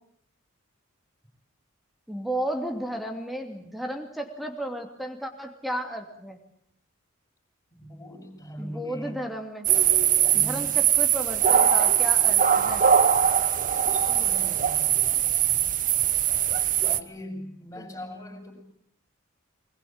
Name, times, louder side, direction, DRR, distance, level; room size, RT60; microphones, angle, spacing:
voice 1, 2.1-6.4 8.6-9.7 10.3-12.8 17.8-17.9, right 1 dB, ahead, 4 dB, 2.8 m, -33 dB
voice 2, 7.7-9.2 10.3-10.7 13.8-15.6 16.8-18.5, equal, 15° left, 4 dB, 6.0 m, -41 dB
sound 1, 9.6-17.0, right 9 dB, 40° right, 1.0 m, -21 dB
23.0 x 21.0 x 8.8 m, 0.70 s
head